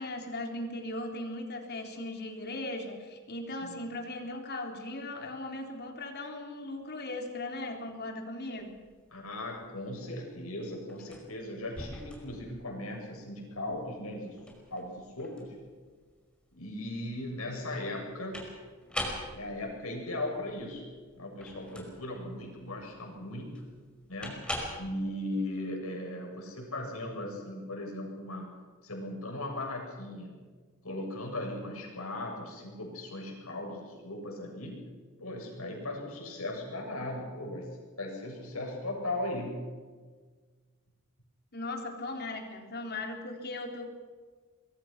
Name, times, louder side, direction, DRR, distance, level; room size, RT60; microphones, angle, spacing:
voice 1, 0.0-8.7 41.5-43.9, left 2 dB, 50° left, 3 dB, 3.8 m, -38 dB
sound 1, 8.5-24.8, left 1 dB, 5° left, 5.4 m, -43 dB
voice 2, 9.1-14.4 14.7-15.5 16.5-18.5 19.3-20.9 21.2-23.6 24.1-28.5 28.8-30.4 30.8-34.8 35.2-37.7 38.0-39.7, left 1 dB, 75° left, 1 dB, 7.9 m, -38 dB
25.5 x 22.5 x 6.0 m, 1.5 s
head